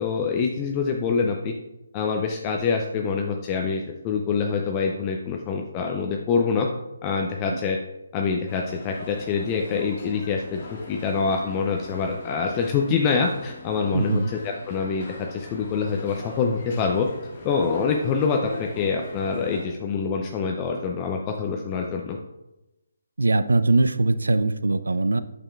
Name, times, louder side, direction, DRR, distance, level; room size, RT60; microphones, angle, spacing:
voice 1, 0.0-1.5 1.9-6.7 7.0-7.8 8.1-17.1 17.4-22.2, left 5 dB, 20° left, 2 dB, 0.5 m, -25 dB
sound 1, 8.5-19.7, left 2 dB, 40° left, 1.7 m, -41 dB
voice 2, 13.9-14.3 23.2-25.2, right 2 dB, 75° right, 13 dB, 0.4 m, -21 dB
8.7 x 6.8 x 2.4 m, 0.95 s
figure-of-eight pair, 145°, 0 cm